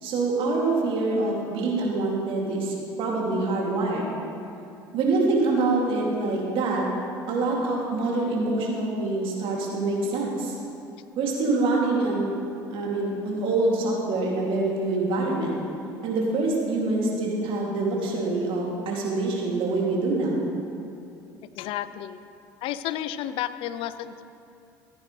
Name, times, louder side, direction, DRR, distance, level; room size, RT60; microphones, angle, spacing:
voice 1, 0.0-4.1 4.9-6.8 7.3-10.5 11.2-12.3 12.7-15.6 16.0-20.5, right 2 dB, 55° right, -2 dB, 2.6 m, -25 dB
voice 2, 21.6-22.2 22.6-24.2, left 12 dB, 60° left, 14 dB, 0.5 m, -31 dB
15.0 x 9.4 x 3.3 m, 2.6 s
hypercardioid pair, 65°, 10 cm